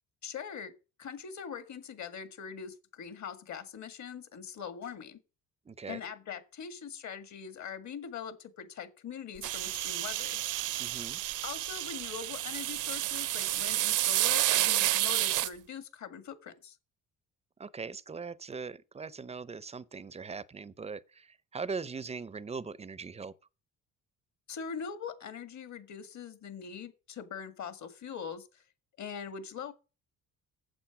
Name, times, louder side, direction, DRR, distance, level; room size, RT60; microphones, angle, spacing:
voice 1, 0.2-0.7 1.0-5.2 5.9-10.4 11.4-16.8 24.5-28.6 29.0-29.7, left 7 dB, 55° left, 1.9 m, -42 dB
voice 2, 5.7-6.0 10.8-11.2 17.6-23.3, right 5 dB, 20° right, 0.5 m, -40 dB
sound 1, 9.4-15.5, right 15 dB, 65° right, 0.6 m, -30 dB
8.8 x 7.7 x 5.9 m
cardioid pair, 115°, 33 cm